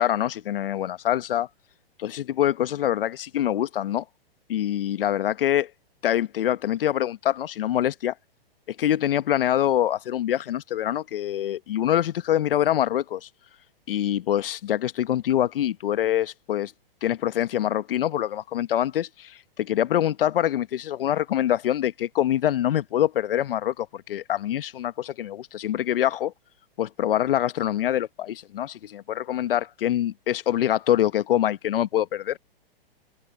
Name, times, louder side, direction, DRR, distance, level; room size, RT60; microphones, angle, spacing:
voice 1, 0.0-1.5 2.0-4.0 4.5-5.7 6.0-8.1 8.7-13.3 13.9-16.7 17.0-26.3 26.8-32.4, left 11 dB, 65° left, 1.3 m, -25 dB
open air
hypercardioid pair, 130°, 30 cm